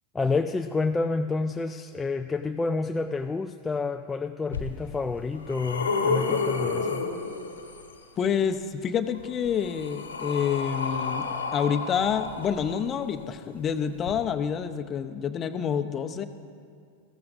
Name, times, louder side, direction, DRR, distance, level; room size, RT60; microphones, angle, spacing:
voice 1, 0.1-7.1, left 3 dB, 15° left, 6 dB, 0.4 m, -29 dB
sound 1, 4.5-4.6 5.2-7.9 9.1-13.0 14.0-14.1, left 4 dB, 80° left, 1.3 m, -30 dB
voice 2, 8.2-16.3, left 7 dB, 30° left, 8 dB, 0.8 m, -28 dB
19.5 x 15.5 x 2.6 m, 2.2 s
figure-of-eight pair, 90°, 0 cm